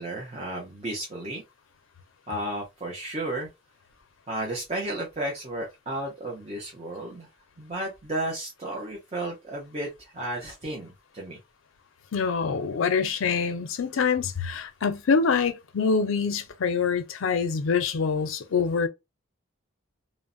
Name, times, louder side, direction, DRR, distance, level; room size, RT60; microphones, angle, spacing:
voice 1, 0.0-1.4 2.3-3.5 4.3-7.3 7.6-11.4, right 1 dB, 30° right, 0.6 m, -33 dB
voice 2, 12.1-18.9, left 5 dB, 75° left, 0.5 m, -25 dB
3.0 x 2.0 x 2.5 m
head